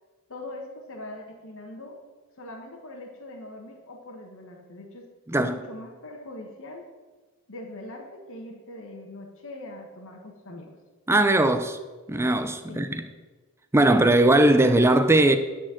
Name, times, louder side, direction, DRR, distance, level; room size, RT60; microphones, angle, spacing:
voice 1, 0.3-2.0 2.4-5.1 5.4-6.9 7.5-10.7 12.6-12.9, left 1 dB, 60° left, 1.3 m, -41 dB
voice 2, 11.1-11.8 12.1-13.0 13.7-15.4, right 1 dB, 10° right, 0.5 m, -19 dB
10.0 x 4.3 x 7.6 m
head